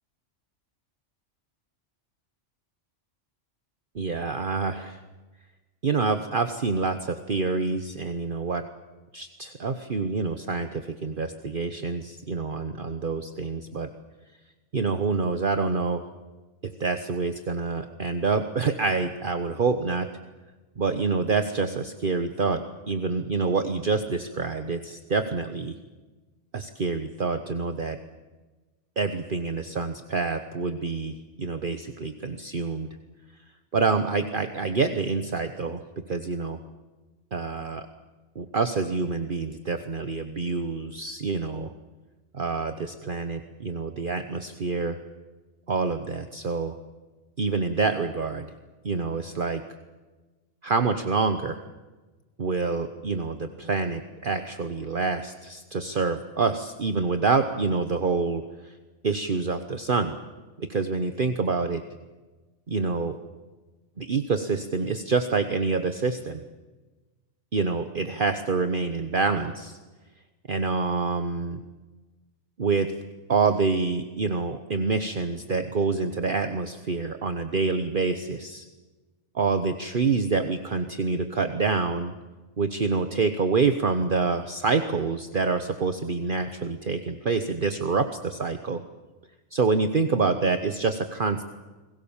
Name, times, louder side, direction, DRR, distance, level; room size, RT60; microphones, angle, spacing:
voice 1, 3.9-5.0 5.8-8.6 9.1-13.9 14.7-16.0 16.8-20.1 20.8-22.6 22.9-25.7 26.5-28.0 29.0-32.9 33.7-35.8 36.1-36.6 37.3-37.9 38.3-41.7 42.3-45.0 45.7-46.7 47.4-48.5 48.8-49.6 50.6-51.6 52.4-58.7 59.0-60.1 60.6-61.8 62.7-63.2 64.0-66.4 67.5-69.8 70.5-71.6 72.6-72.9 73.3-78.6 79.3-82.1 82.6-88.8 89.5-91.5, right 4 dB, 45° right, 8 dB, 1.3 m, -27 dB
30.0 x 21.5 x 7.2 m, 1.2 s
omnidirectional pair, 1.3 m